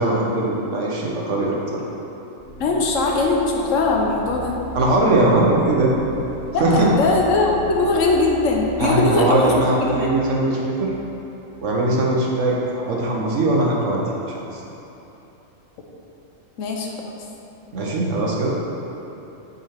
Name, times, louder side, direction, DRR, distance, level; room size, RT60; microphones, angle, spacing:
voice 1, 0.0-1.8 4.7-5.9 6.6-6.9 8.8-10.9 11.6-14.0 14.3-14.6 17.7-18.5, right 2 dB, 70° right, -3 dB, 1.3 m, -20 dB
sound 1, 2.4-12.2, right 1 dB, 35° left, 0.8 m, -38 dB
voice 2, 2.6-4.6 6.5-9.5 10.0-10.1 16.6-17.2, left 3 dB, 80° left, 0 dB, 1.2 m, -20 dB
8.1 x 3.9 x 4.4 m, 3.0 s
omnidirectional pair, 1.3 m